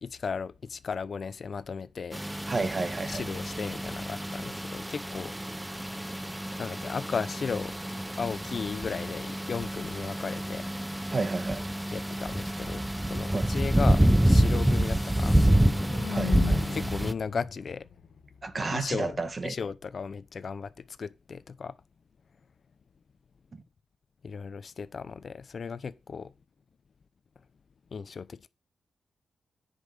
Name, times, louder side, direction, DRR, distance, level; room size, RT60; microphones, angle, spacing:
voice 1, 0.0-2.2 3.1-5.3 6.6-7.8 8.2-10.7 11.9-15.4 16.4-17.9 18.7-21.7 24.2-26.3 27.9-28.5, left 5 dB, 50° left, 0.8 m, -35 dB
sound 1, 2.1-17.1, right 1 dB, 5° right, 0.7 m, -27 dB
voice 2, 2.5-3.2 11.1-11.6 13.3-13.5 16.1-16.4 18.4-19.5 23.5-23.6, right 3 dB, 35° right, 1.4 m, -31 dB
sound 2, 13.6-15.5, left 2 dB, 15° left, 1.7 m, -51 dB
sound 3, 15.1-19.1, left 6 dB, 70° left, 1.4 m, -37 dB
10.0 x 5.4 x 6.8 m
cardioid pair, 100°, 0 cm